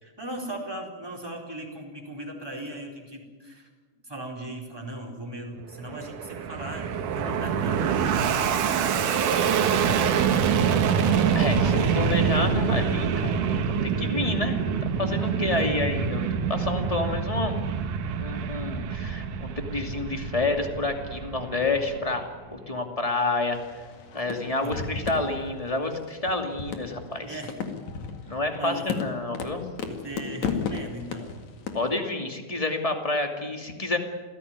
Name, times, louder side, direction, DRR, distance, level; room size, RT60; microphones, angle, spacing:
voice 1, 0.0-3.7 4.0-10.0 15.5-15.9 24.6-24.7 27.2-27.6 28.2-29.1 29.9-31.4, right 1 dB, 5° right, 3 dB, 4.4 m, -38 dB
Fixed-wing aircraft airplane, 5.7-22.3, right 7 dB, 80° right, 2.9 m, -26 dB
voice 2, 11.3-17.6 18.2-23.6 24.1-27.4 28.3-29.6 31.7-34.0, left 2 dB, 10° left, 4 dB, 2.0 m, -29 dB
sound 1, 23.5-32.0, left 5 dB, 65° left, 3.4 m, -34 dB
28.0 x 17.0 x 9.6 m, 1.4 s
omnidirectional pair, 3.6 m